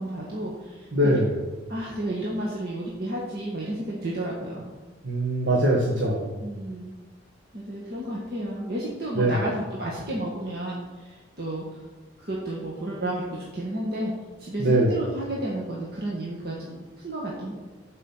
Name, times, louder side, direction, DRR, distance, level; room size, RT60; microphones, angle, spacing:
voice 1, 0.0-0.9 1.7-4.7 6.4-6.9 7.5-11.8 12.2-14.1 14.4-17.5, right 1 dB, 55° right, -5 dB, 1.8 m, -32 dB
voice 2, 0.9-1.3 5.0-6.3 9.2-9.4 14.6-14.9, right 1 dB, 80° right, -3 dB, 1.8 m, -22 dB
13.0 x 5.4 x 5.8 m, 1.3 s
head